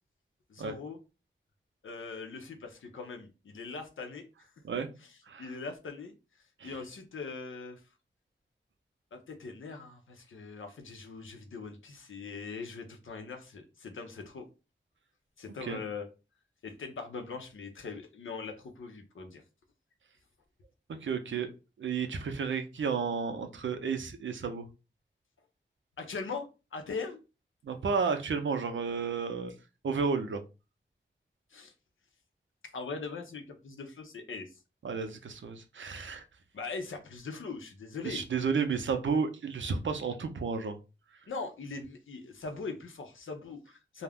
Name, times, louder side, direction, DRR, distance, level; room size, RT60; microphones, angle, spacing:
voice 1, 0.5-1.0 1.8-4.3 5.4-6.1 6.6-7.8 9.1-14.5 15.4-16.1 16.6-19.4 26.0-27.2 31.5-31.7 32.7-34.6 36.5-38.2 41.3-44.0, left 4 dB, 90° left, 5 dB, 0.6 m, -41 dB
voice 2, 21.0-21.5 21.8-24.7 27.6-29.5 29.8-30.4 34.8-36.2 38.0-40.8, right 5 dB, 75° right, 7 dB, 0.5 m, -32 dB
2.4 x 2.1 x 3.4 m, 0.30 s
wide cardioid pair, 60°, 20 cm